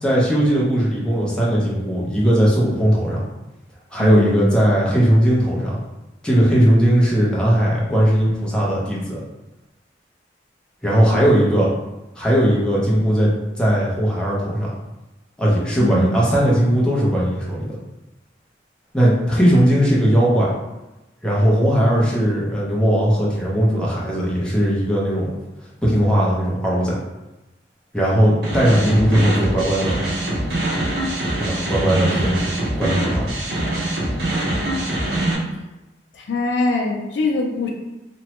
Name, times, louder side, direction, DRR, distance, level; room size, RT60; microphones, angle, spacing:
voice 1, 0.0-3.2 3.9-5.8 6.2-9.2 10.8-11.7 12.2-14.7 15.4-17.8 18.9-20.5 21.2-25.3 25.8-27.0 27.9-30.0 31.4-32.4 32.8-33.2, equal, 5° left, -6 dB, 0.5 m, -18 dB
voice 2, 4.0-4.5 15.8-16.2 36.1-37.7, left 2 dB, 70° left, 1 dB, 0.4 m, -22 dB
sound 1, 28.4-35.3, right 1 dB, 60° right, 0.6 m, -23 dB
2.9 x 2.1 x 2.9 m, 1.0 s
head